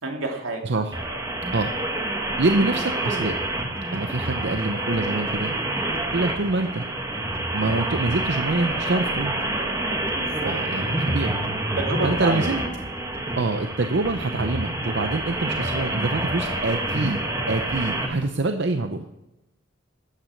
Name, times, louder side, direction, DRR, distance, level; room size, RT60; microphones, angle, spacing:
voice 1, 0.0-0.7 10.2-10.5 11.8-12.5, right 2 dB, 80° right, 2 dB, 2.6 m, -28 dB
voice 2, 0.6-0.9 1.5-1.7 2.4-3.3 3.9-5.5 6.1-6.8 7.5-9.3 10.4-11.3 12.0-12.6 13.4-17.2 17.5-19.0, right 2 dB, 55° right, 7 dB, 0.7 m, -25 dB
sound 1, 0.9-18.1, right 1 dB, 15° right, 1.5 m, -27 dB
sound 2, 3.1-18.3, equal, 10° left, 1.7 m, -42 dB
13.5 x 9.1 x 6.4 m, 0.95 s
head